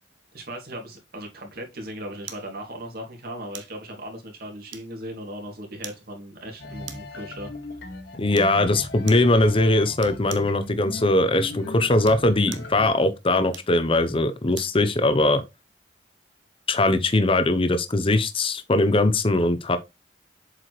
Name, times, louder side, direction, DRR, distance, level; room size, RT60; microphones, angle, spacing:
voice 1, 0.3-7.8, equal, 55° right, 2.7 m, -38 dB
sound 1, 2.3-2.5 3.5-3.8 4.7-5.1 5.8-6.1 6.8-7.2 8.3-8.6 9.1-9.3 10.0-10.5 11.9-12.8 13.5-14.8 15.3-15.4, right 9 dB, 80° right, 1.1 m, -41 dB
sound 2, 6.6-12.9, left 2 dB, 70° left, 1.9 m, -38 dB
voice 2, 8.2-15.4 16.7-19.8, left 2 dB, 30° left, 0.8 m, -21 dB
7.7 x 4.9 x 3.2 m
head